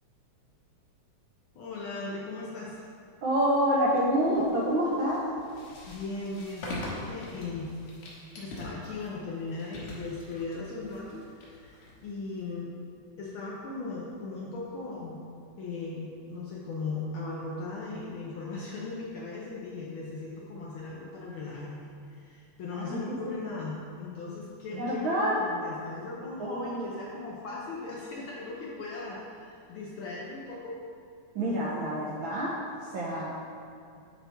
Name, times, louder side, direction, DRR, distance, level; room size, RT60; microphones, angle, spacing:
voice 1, 1.5-2.8 5.6-7.7 8.4-12.7 13.2-15.2 15.6-30.8, left 3 dB, 90° left, -5 dB, 1.1 m, -38 dB
voice 2, 3.2-5.2 22.7-23.2 23.5-23.6 24.7-25.4 26.4-26.9 31.3-33.3, equal, 75° right, -5 dB, 1.1 m, -28 dB
sound 1, 3.9-12.5, left 1 dB, 70° left, 2.6 m, -44 dB
11.0 x 4.4 x 3.5 m, 2.4 s
omnidirectional pair, 3.4 m